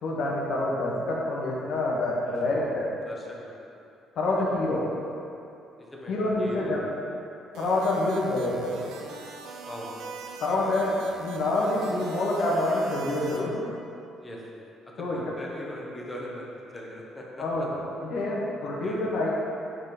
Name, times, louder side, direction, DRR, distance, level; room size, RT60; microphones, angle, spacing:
voice 1, 0.0-2.9 4.2-4.8 6.1-6.8 7.6-8.9 10.4-10.9 11.2-13.6 15.0-15.2 17.4-17.7 18.0-19.3, left 2 dB, 65° left, -4 dB, 1.8 m, -27 dB
voice 2, 2.3-2.6 3.1-3.7 5.8-6.7 9.6-9.9 14.2-14.6 15.0-16.4 16.7-17.7 18.6-19.0, equal, 15° left, -3 dB, 1.5 m, -41 dB
sound 1, 7.5-13.4, right 4 dB, 85° right, 0.9 m, -42 dB
8.7 x 4.3 x 5.3 m, 2.7 s
cardioid pair, 115°, 0 cm